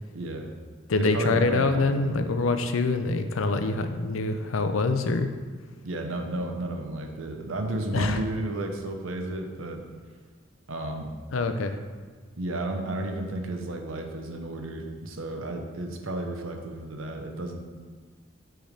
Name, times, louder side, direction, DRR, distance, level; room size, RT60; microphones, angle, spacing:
voice 1, 0.1-0.5 1.0-2.2 5.8-9.8 10.7-11.1 12.4-17.6, right 2 dB, 85° right, 3 dB, 0.8 m, -33 dB
voice 2, 0.9-5.3 7.9-8.2 11.3-11.8, left 3 dB, 85° left, 8 dB, 0.5 m, -25 dB
7.8 x 3.4 x 5.0 m, 1.5 s
head